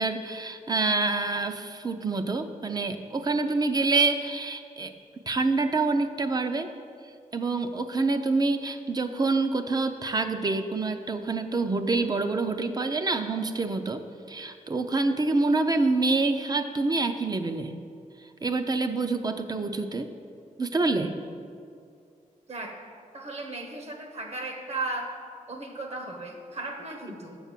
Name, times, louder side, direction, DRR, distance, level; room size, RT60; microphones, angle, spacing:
voice 1, 0.0-4.9 5.3-6.7 7.3-14.0 14.3-17.8 18.4-20.1 20.6-21.2, right 3 dB, 30° right, 8 dB, 0.5 m, -26 dB
voice 2, 23.1-25.1 25.5-27.4, right 2 dB, 50° right, 3 dB, 1.2 m, -36 dB
7.0 x 6.7 x 7.3 m, 2.3 s
wide cardioid pair, 150°, 14 cm